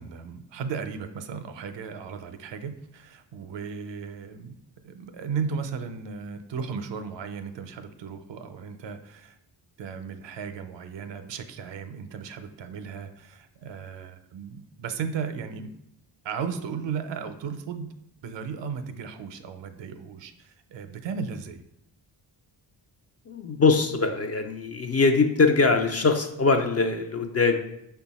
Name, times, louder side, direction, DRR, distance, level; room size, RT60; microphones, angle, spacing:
voice 1, 0.0-4.6 4.8-9.4 9.8-15.7 16.2-17.9 18.2-21.6, right 6 dB, 70° right, 9 dB, 0.5 m, -35 dB
voice 2, 23.3-27.6, left 4 dB, 35° left, 6 dB, 0.4 m, -22 dB
5.3 x 2.3 x 4.0 m, 0.79 s
cardioid pair, 80°, 45 cm